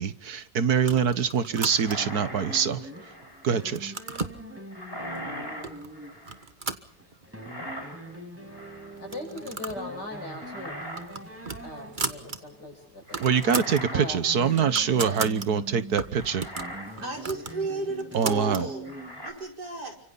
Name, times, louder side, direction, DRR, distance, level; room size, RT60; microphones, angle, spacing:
voice 1, 0.0-2.9 3.4-3.9 13.2-16.4 18.1-18.7, right 7 dB, 70° right, 13 dB, 1.8 m, -24 dB
sound 1, 0.8-2.2 2.8-3.3 3.6-4.4 5.2-5.3 5.6-5.9 6.2-7.5 7.8-7.9 8.1-8.2 9.0-9.9 10.2-10.4 10.7-12.4 12.7-12.8 13.0-13.8 14.3-15.5 16.0-18.7, right 4 dB, 30° right, 1.5 m, -35 dB
sound 2, 1.6-3.5 4.7-6.5 7.4-8.2 8.5-9.0 10.2-11.1 11.4-11.6 13.1-14.9 15.6-15.7 16.1-17.0 17.4-17.6 18.8-19.3, equal, 35° left, 4.5 m, -40 dB
sound 3, 2.0-12.6 13.6-19.4, right 1 dB, 10° right, 5.4 m, -43 dB
voice 2, 9.0-10.8 11.6-13.2 13.9-14.2 14.9-15.2, left 1 dB, 90° left, 4 dB, 7.4 m, -39 dB
voice 3, 17.0-20.0, right 3 dB, 85° right, 2 dB, 6.1 m, -33 dB
30.0 x 26.0 x 4.1 m, 0.64 s
omnidirectional pair, 1.8 m